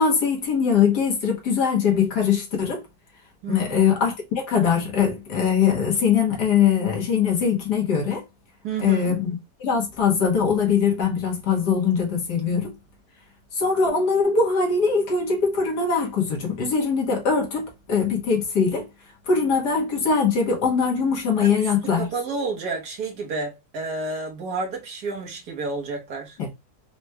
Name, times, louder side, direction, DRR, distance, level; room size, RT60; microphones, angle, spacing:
voice 1, 0.0-2.8 3.5-8.2 8.8-12.7 13.5-18.9 19.3-22.1 26.4-26.5, left 6 dB, 75° left, 1.8 m, -22 dB
voice 2, 3.4-3.9 8.6-9.2 21.4-26.4, right 4 dB, 70° right, 1.7 m, -30 dB
5.0 x 3.0 x 2.2 m
omnidirectional pair, 1.8 m